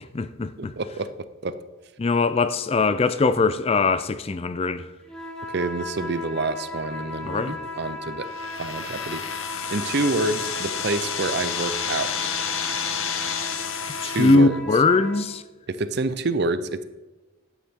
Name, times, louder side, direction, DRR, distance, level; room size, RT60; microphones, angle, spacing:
voice 1, 0.1-0.7 2.0-4.9 7.2-7.6 14.0-15.4, left 3 dB, 30° left, 0.3 m, -21 dB
voice 2, 0.8-1.1 1.4-1.6 5.5-8.3 8.6-9.2 9.7-12.3 14.0-14.6 15.7-16.8, right 3 dB, 50° right, 0.6 m, -27 dB
sound 1, 5.0-15.3, left 2 dB, 5° left, 1.4 m, -36 dB
sound 2, 8.2-14.4, left 7 dB, 80° left, 0.9 m, -30 dB
12.0 x 8.6 x 3.6 m
head